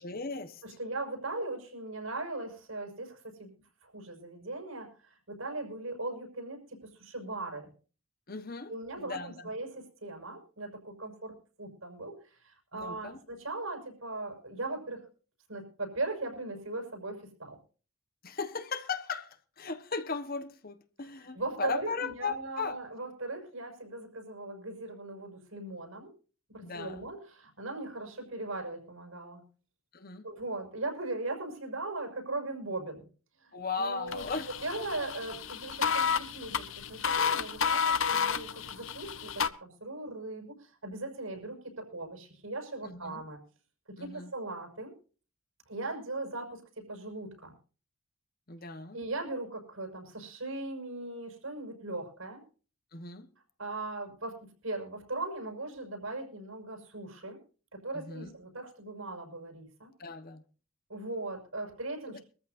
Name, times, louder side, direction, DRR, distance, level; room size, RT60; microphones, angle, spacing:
voice 1, 0.0-0.6 8.3-9.5 12.7-13.2 18.2-22.8 26.6-27.1 29.9-30.3 33.5-34.5 42.8-43.2 44.0-44.3 48.5-49.0 52.9-53.3 57.9-58.4 60.0-60.4 62.1-62.2, left 4 dB, 45° left, 1.2 m, -37 dB
voice 2, 0.6-3.5 3.8-7.7 8.7-15.0 15.5-17.6 21.3-26.1 26.5-29.4 30.2-33.1 33.4-34.2 34.6-43.4 43.9-44.9 45.7-47.5 48.9-52.4 53.6-57.4 57.7-59.9 60.9-62.2, right 2 dB, 70° right, 6.1 m, -39 dB
sound 1, 34.1-39.5, left 6 dB, 60° left, 0.9 m, -31 dB
23.5 x 14.0 x 2.6 m
head